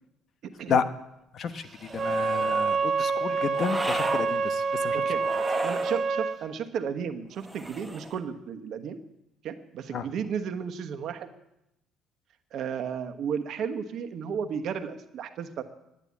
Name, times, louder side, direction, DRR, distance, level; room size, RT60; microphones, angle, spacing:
voice 1, 0.4-0.8 4.9-5.2 5.6-9.0 9.4-11.3 12.5-15.6, right 7 dB, 65° right, 8 dB, 1.2 m, -33 dB
voice 2, 1.3-5.0 9.9-10.1, left 6 dB, 55° left, 12 dB, 1.0 m, -31 dB
sound 1, 1.8-2.6 3.5-4.3 5.2-6.0 7.4-8.2, right 1 dB, 5° right, 1.5 m, -35 dB
Wind instrument woodwind instrument, 1.9-6.4, right 4 dB, 40° right, 1.4 m, -27 dB
11.0 x 9.6 x 8.5 m, 0.88 s
supercardioid pair, 65°, 0 cm